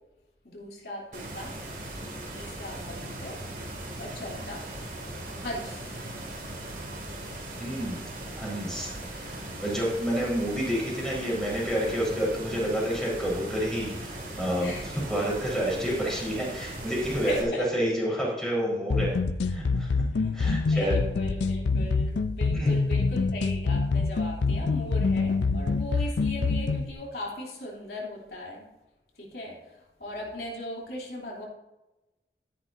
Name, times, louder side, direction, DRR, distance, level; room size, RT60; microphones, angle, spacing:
voice 1, 0.4-1.6 2.3-3.4 4.0-4.7 5.4-6.0 6.3-6.5 14.6-15.0 17.2-17.7 18.1-18.2 20.1-28.7 29.2-31.5, left 1 dB, 60° left, -3 dB, 3.0 m, -38 dB
sound 1, 1.1-17.4, right 1 dB, 45° right, 2.4 m, -39 dB
voice 2, 7.6-8.1 8.4-14.7 15.1-17.5 17.7-19.2 19.4-19.9 20.3-21.0 22.5-22.7 25.5-25.6, equal, 5° left, -5 dB, 4.2 m, -29 dB
sound 2, 18.9-26.9, left 4 dB, 85° left, 0.5 m, -26 dB
13.5 x 10.0 x 2.7 m, 1.0 s
head